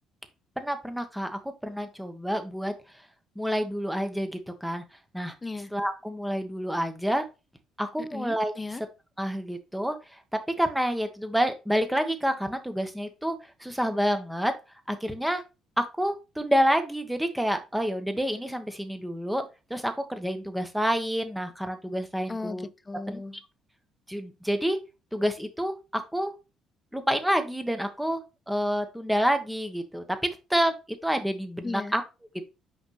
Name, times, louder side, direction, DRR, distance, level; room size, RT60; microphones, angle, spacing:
voice 1, 0.6-2.7 3.3-4.8 5.1-5.3 5.7-7.2 7.8-8.5 9.2-10.2 10.6-14.5 14.9-15.4 15.8-19.4 19.7-22.7 23.1-23.2 24.1-24.8 25.1-26.3 26.9-28.2 28.5-30.7 31.0-32.0, equal, 5° right, 1.2 m, -28 dB
voice 2, 5.4-5.7 8.0-8.8 22.3-23.4 31.6-32.0, left 3 dB, 20° left, 0.4 m, -36 dB
5.7 x 5.5 x 3.2 m
figure-of-eight pair, 45°, 0 cm